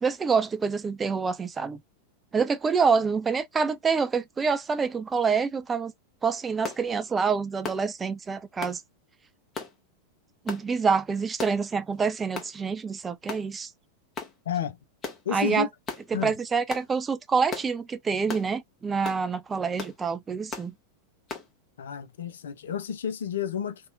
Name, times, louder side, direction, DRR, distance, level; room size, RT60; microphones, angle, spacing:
voice 1, 0.0-1.8 2.3-5.9 6.2-8.8 10.5-13.7 15.3-15.7 16.1-20.7, right 5 dB, 15° right, 0.4 m, -26 dB
sound 1, 6.6-6.8 7.6-7.9 8.6-8.8 9.5-9.7 10.5-10.7 11.4-11.6 12.3-12.5 13.3-13.5 14.1-14.3 15.0-15.2 15.9-16.0 16.7-16.9 17.5-17.7 18.3-18.5 19.0-19.2 19.8-20.0 20.5-20.7 21.3-21.5, left 4 dB, 25° left, 0.9 m, -36 dB
voice 2, 14.5-14.8 15.3-15.7 16.1-16.3 21.8-23.9, left 8 dB, 65° left, 0.4 m, -31 dB
2.7 x 2.2 x 2.6 m
figure-of-eight pair, 90°, 0 cm